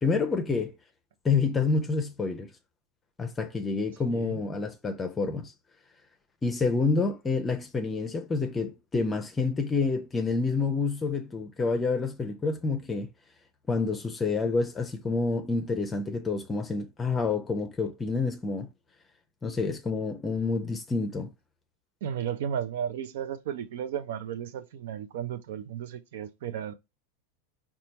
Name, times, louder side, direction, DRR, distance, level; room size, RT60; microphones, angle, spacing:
voice 1, 0.0-0.7 1.2-2.5 3.2-5.5 6.4-13.1 13.7-18.7 19.4-21.3, left 4 dB, 20° left, 0.6 m, -28 dB
voice 2, 4.1-4.4 22.0-26.7, right 9 dB, 65° right, 0.5 m, -34 dB
4.3 x 2.3 x 4.0 m
hypercardioid pair, 95°, 0 cm